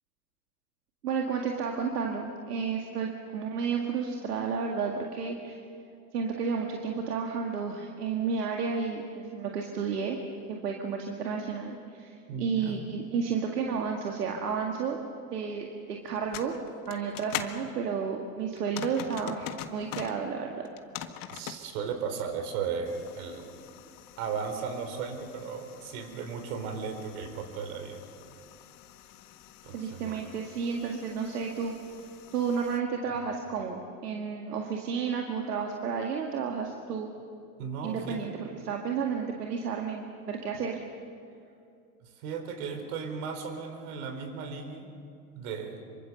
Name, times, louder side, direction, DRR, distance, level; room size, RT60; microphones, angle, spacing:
voice 1, 1.0-5.6 6.1-10.2 10.5-15.0 15.3-16.5 16.9-20.7 29.7-31.7 32.3-37.1 37.8-40.8, right 6 dB, 85° right, 1 dB, 2.1 m, -32 dB
voice 2, 12.3-12.8 21.3-23.5 24.2-28.0 29.6-30.2 37.6-38.3 42.0-44.9 45.3-45.8, right 6 dB, 65° right, 7 dB, 4.3 m, -36 dB
sound 1, 16.1-17.6 18.6-20.2 20.6-21.6 22.9-32.8, left 12 dB, 45° left, 1.7 m, -44 dB
26.0 x 24.0 x 6.8 m, 2.5 s
hypercardioid pair, 90°, 46 cm